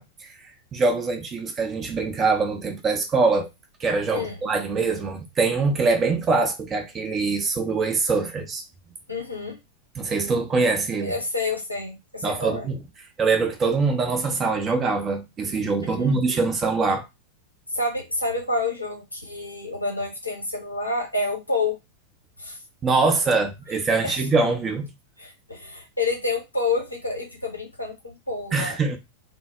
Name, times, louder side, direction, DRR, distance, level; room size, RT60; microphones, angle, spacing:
voice 1, 0.0-3.5 3.8-8.6 10.0-11.2 12.2-12.8 13.2-17.1 22.8-24.9 28.5-29.0, right 4 dB, 25° right, 0.6 m, -23 dB
voice 2, 9.1-9.6 11.0-12.7 15.8-16.1 17.7-21.8 22.4-22.6 24.0-24.3 25.2-28.8, left 3 dB, 85° left, 0.8 m, -28 dB
2.0 x 2.0 x 3.3 m
figure-of-eight pair, 90°, 0 cm